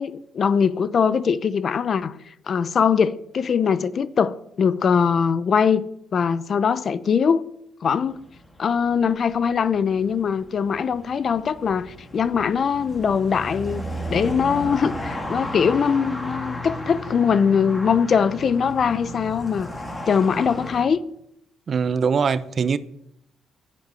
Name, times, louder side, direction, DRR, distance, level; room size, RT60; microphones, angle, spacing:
voice 1, 0.0-2.1 2.5-7.4 7.8-8.2 8.6-13.8 14.1-19.7 20.1-21.0, left 6 dB, 50° left, 0.7 m, -21 dB
Country Road Ambience Cars, 7.9-20.9, equal, 20° left, 2.5 m, -34 dB
voice 2, 21.7-22.8, right 6 dB, 50° right, 0.7 m, -22 dB
10.5 x 8.6 x 7.7 m
cardioid pair, 90°, 0 cm